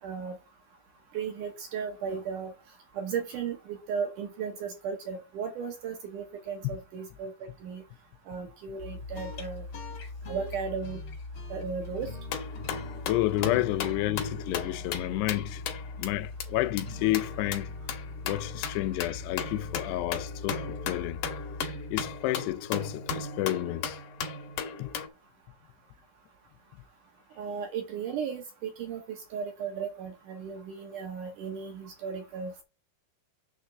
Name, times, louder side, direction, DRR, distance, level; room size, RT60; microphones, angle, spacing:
voice 1, 0.0-0.4 1.1-7.8 8.3-9.7 10.3-11.0 11.5-12.2 27.4-32.6, right 6 dB, 65° right, 2.1 m, -36 dB
sound 1, 8.8-22.4, left 2 dB, 45° left, 1.5 m, -41 dB
sound 2, 12.3-16.1 16.4-16.5 16.8-16.9 17.1-25.1, left 6 dB, 65° left, 2.2 m, -36 dB
voice 2, 13.1-15.6 16.0-17.7 18.3-21.2 21.9-24.0 24.8-24.9, left 17 dB, 85° left, 2.6 m, -30 dB
9.3 x 3.6 x 6.6 m
omnidirectional pair, 4.9 m